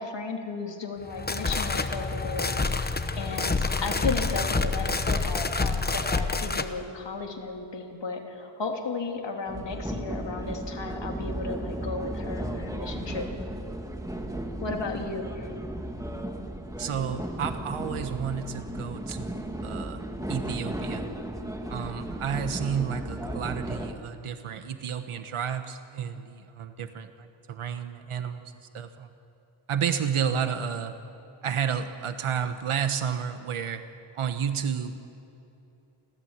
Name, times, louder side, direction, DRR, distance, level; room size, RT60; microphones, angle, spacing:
voice 1, 0.0-2.5 3.2-13.3 14.6-15.5, left 4 dB, 55° left, 2 dB, 2.8 m, -34 dB
sound 1, 1.0-6.7, left 3 dB, 20° left, 0.8 m, -27 dB
sound 2, 9.5-23.9, right 1 dB, 5° right, 1.4 m, -35 dB
voice 2, 16.8-20.0 20.3-21.1 21.7-29.1 29.7-31.0 31.4-33.8 34.1-35.0, right 7 dB, 80° right, 8 dB, 1.2 m, -31 dB
28.5 x 14.0 x 8.9 m, 2.9 s
wide cardioid pair, 160°, 50 cm